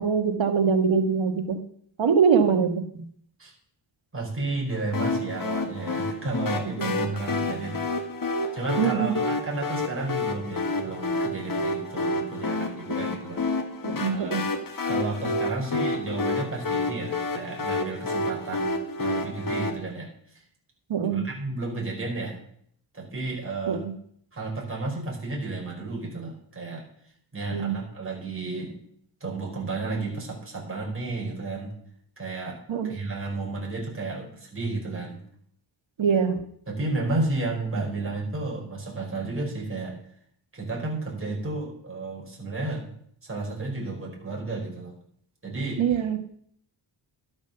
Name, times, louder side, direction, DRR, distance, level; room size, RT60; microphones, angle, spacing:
voice 1, 0.0-1.6 2.0-3.0 6.8-7.1 8.8-9.1 13.8-14.4 20.9-21.3 23.7-23.9 27.4-27.7 32.7-32.9 36.0-36.4 45.8-46.2, right 6 dB, 75° right, 6 dB, 1.6 m, -23 dB
voice 2, 4.1-8.1 8.5-13.4 13.9-14.5 14.9-20.4 21.1-22.4 22.9-23.8 24.3-26.8 27.3-28.8 29.2-31.7 32.2-32.6 32.8-35.2 36.7-40.0 40.5-42.9 43.2-44.9 45.4-45.8, right 2 dB, 25° right, -2 dB, 5.1 m, -32 dB
sound 1, 4.9-19.7, left 2 dB, 45° left, 1.7 m, -29 dB
12.5 x 8.0 x 6.8 m, 0.65 s
wide cardioid pair, 130°, 47 cm